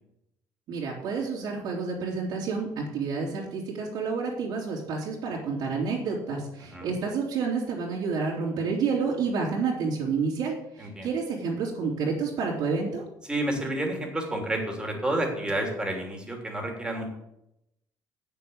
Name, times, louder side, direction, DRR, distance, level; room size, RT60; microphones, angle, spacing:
voice 1, 0.7-13.0, right 5 dB, 65° right, -5 dB, 3.0 m, -29 dB
voice 2, 13.2-17.1, right 1 dB, 10° right, 1 dB, 3.1 m, -30 dB
8.2 x 7.0 x 7.2 m, 0.83 s
cardioid pair, 105°, 8 cm